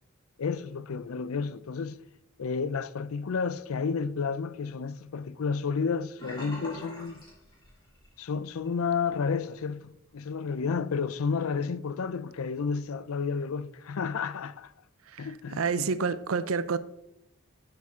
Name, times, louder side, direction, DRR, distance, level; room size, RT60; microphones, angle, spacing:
voice 1, 0.4-2.0 2.4-7.2 8.2-14.7 15.2-15.9, left 5 dB, 80° left, 0.5 m, -31 dB
Sink (filling or washing), 6.2-8.2 8.5-8.8 9.2-9.3, equal, 20° left, 3.4 m, -43 dB
voice 2, 15.1-16.8, right 5 dB, 80° right, 0.5 m, -29 dB
9.4 x 8.1 x 3.7 m
head